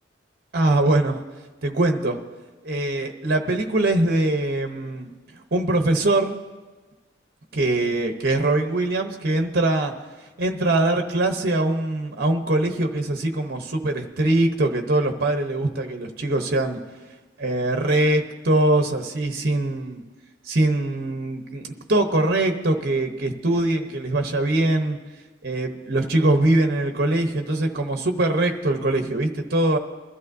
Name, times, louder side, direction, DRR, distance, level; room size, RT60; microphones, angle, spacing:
voice 1, 0.5-1.2 1.6-2.2 2.6-5.1 5.5-6.4 7.5-9.9 10.4-16.8 17.4-20.0 20.4-25.0 25.4-29.8, right 2 dB, 50° right, 5 dB, 0.9 m, -22 dB
22.0 x 12.5 x 2.7 m, 1.3 s
head